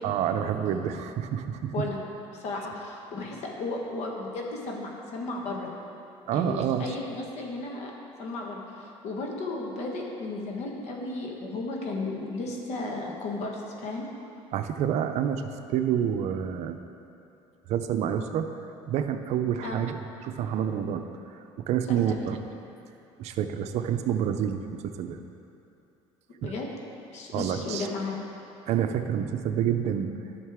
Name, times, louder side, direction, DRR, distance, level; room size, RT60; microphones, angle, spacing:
voice 1, 0.0-1.9 6.3-6.8 14.5-16.8 17.7-18.5 18.9-21.1 21.6-22.4 23.2-25.2 26.4-26.5 27.3-27.9 28.7-30.1, right 9 dB, 65° right, 8 dB, 0.5 m, -28 dB
voice 2, 2.3-5.7 6.3-7.9 8.2-14.1 19.6-19.8 21.9-22.3 26.4-26.7 27.1-28.2, left 2 dB, 60° left, 0 dB, 1.4 m, -34 dB
11.0 x 6.6 x 3.6 m, 2.8 s
supercardioid pair, 100°, 12 cm